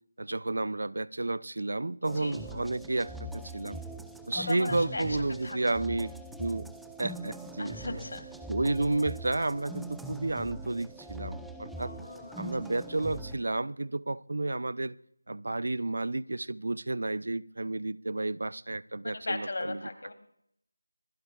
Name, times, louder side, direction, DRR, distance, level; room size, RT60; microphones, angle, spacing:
voice 1, 0.2-3.8 4.3-6.1 6.4-6.7 7.0-8.0 8.5-11.9 12.4-14.9 15.3-19.8, right 2 dB, 65° right, 0.5 m, -31 dB
sound 1, 2.0-13.4, right 1 dB, ahead, 0.5 m, -42 dB
voice 2, 4.3-5.2 5.4-5.6 7.6-8.3 11.7-12.4 19.0-20.1, left 2 dB, 65° left, 3.0 m, -37 dB
26.5 x 17.0 x 2.4 m
figure-of-eight pair, 170°, 0 cm